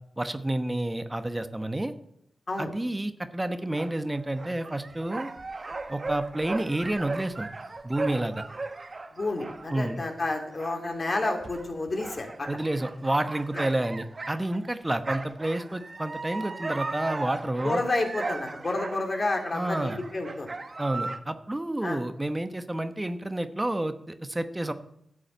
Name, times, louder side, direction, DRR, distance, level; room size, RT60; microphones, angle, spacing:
voice 1, 0.2-1.9 2.6-5.3 5.9-7.5 7.8-8.4 9.7-10.0 12.5-17.8 19.5-20.0 20.8-24.7, right 1 dB, 20° right, 9 dB, 1.0 m, -29 dB
sound 1, 3.8-14.8 15.0-21.2, right 3 dB, 45° right, 1.1 m, -37 dB
voice 2, 9.1-12.5 13.5-13.6 17.6-20.5 20.9-21.0 21.8-22.0, left 2 dB, 50° left, 3 dB, 3.0 m, -30 dB
11.5 x 6.3 x 8.7 m, 0.76 s
cardioid pair, 45°, 0 cm